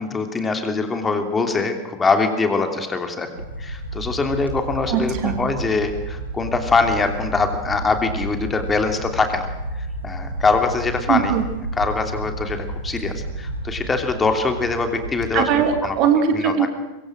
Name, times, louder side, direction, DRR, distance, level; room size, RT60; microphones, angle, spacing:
voice 1, 0.0-3.3 3.6-9.5 10.0-11.3 11.8-15.5 15.8-15.9 16.3-16.5, left 4 dB, 15° left, 6 dB, 3.0 m, -23 dB
sound 1, 3.3-15.8, right 1 dB, 80° right, 3.7 m, -31 dB
voice 2, 4.9-5.4 11.1-11.4 15.3-16.7, right 8 dB, 40° right, 6 dB, 3.1 m, -20 dB
25.0 x 22.5 x 6.4 m, 1.1 s
figure-of-eight pair, 90°, 0 cm